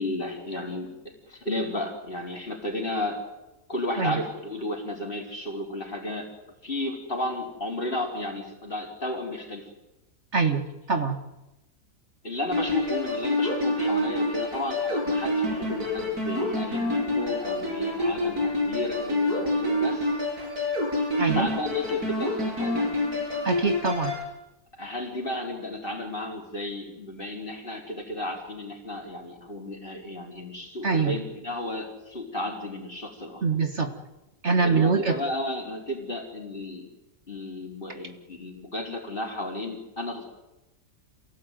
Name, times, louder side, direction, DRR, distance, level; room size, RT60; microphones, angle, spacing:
voice 1, 0.0-3.2 3.7-6.3 6.6-9.7 12.2-20.2 21.2-23.0 24.8-33.4 34.5-36.9 37.3-40.2, left 1 dB, 35° left, 1 dB, 4.8 m, -33 dB
voice 2, 10.3-10.6 10.9-11.2 21.2-21.5 23.4-24.1 30.8-31.2 33.4-33.9 34.4-35.2, right 4 dB, 50° right, 6 dB, 2.0 m, -24 dB
sound 1, 12.5-24.2, left 1 dB, 85° right, 7.2 m, -27 dB
27.5 x 18.0 x 9.4 m, 0.98 s
omnidirectional pair, 1.6 m